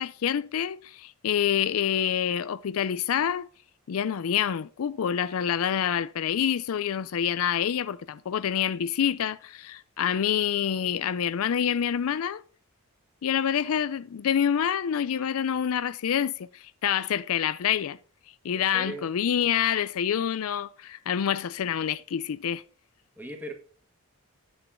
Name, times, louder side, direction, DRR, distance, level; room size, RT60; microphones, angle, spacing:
voice 1, 0.0-3.5 3.9-12.4 13.2-18.0 18.4-22.6, left 8 dB, 70° left, 0.4 m, -27 dB
voice 2, 18.5-19.0 23.2-23.5, right 1 dB, 10° right, 1.7 m, -38 dB
9.9 x 8.3 x 3.6 m
head